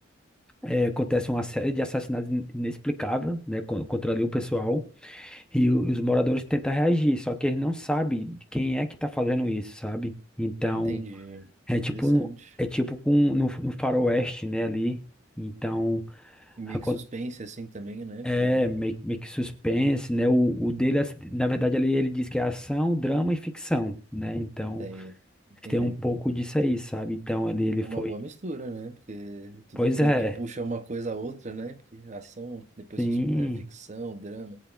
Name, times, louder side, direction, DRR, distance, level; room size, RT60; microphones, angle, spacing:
voice 1, 0.6-11.0 11.7-12.3 12.6-15.1 15.4-17.0 18.2-24.8 25.7-28.1 29.8-30.4 33.0-33.7, equal, 5° left, 0.8 m, -26 dB
voice 2, 10.7-11.5 11.9-12.5 16.6-18.6 24.6-25.1 25.6-26.0 27.8-34.6, right 3 dB, 35° right, 0.8 m, -38 dB
22.0 x 8.2 x 2.5 m
head